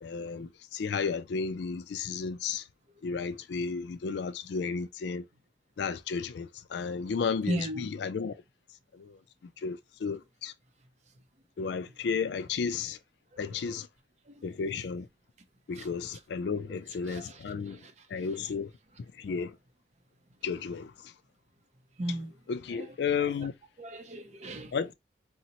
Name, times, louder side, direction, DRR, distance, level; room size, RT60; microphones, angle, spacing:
voice 1, 0.0-2.7 3.0-5.3 5.8-8.4 8.9-9.2 9.6-10.5 11.6-13.0 13.4-13.9 14.4-15.1 15.7-17.8 18.1-18.7 19.2-19.6 20.4-21.1 22.5-23.5 24.7-24.9, left 5 dB, 70° left, 0.4 m, -33 dB
voice 2, 7.5-7.9 13.4-13.5 14.3-14.4 15.8-15.9 17.1-17.4 17.7-17.9 22.0-22.3 22.7-22.8 23.2-23.3 23.8-24.7, right 1 dB, 40° right, 0.5 m, -36 dB
4.0 x 2.0 x 2.8 m
head